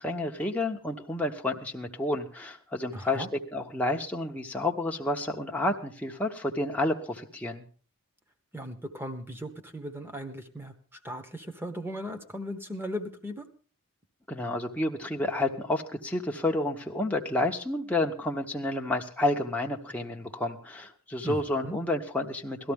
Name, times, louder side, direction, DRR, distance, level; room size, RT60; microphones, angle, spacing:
voice 1, 0.0-3.2 3.5-7.6 14.3-22.7, left 2 dB, 5° left, 0 dB, 0.9 m, -30 dB
voice 2, 2.9-3.3 8.5-13.4 21.2-21.4 21.6-21.8, equal, 10° right, 7 dB, 1.1 m, -37 dB
18.0 x 13.0 x 3.5 m, 0.42 s
head